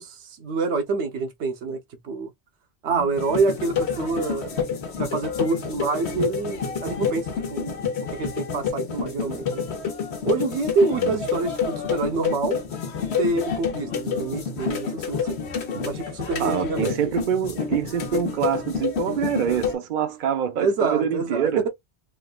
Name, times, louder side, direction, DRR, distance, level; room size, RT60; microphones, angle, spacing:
voice 1, 0.0-1.8 2.0-2.3 2.8-4.5 5.0-7.7 8.1-9.6 10.2-12.6 13.2-15.4 15.8-17.0 20.6-21.7, right 3 dB, 85° right, 1.0 m, -26 dB
sound 1, 3.2-19.7, left 6 dB, 75° left, 1.1 m, -28 dB
voice 2, 16.4-21.6, right 9 dB, 55° right, 0.7 m, -26 dB
3.6 x 2.3 x 2.3 m
omnidirectional pair, 1.1 m